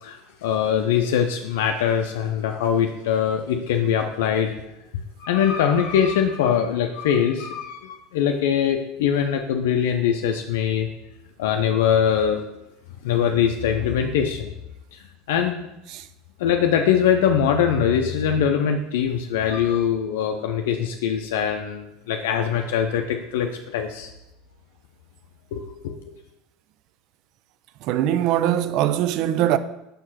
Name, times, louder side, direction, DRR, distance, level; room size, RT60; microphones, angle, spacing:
voice 1, 0.0-4.5 5.2-10.9 11.4-12.4 13.0-14.5 14.9-15.7 16.4-24.1 25.5-25.9, left 8 dB, 75° left, 0.5 m, -22 dB
voice 2, 27.8-29.6, right 12 dB, 60° right, 0.4 m, -22 dB
5.3 x 4.5 x 5.7 m
hypercardioid pair, 85°, 0 cm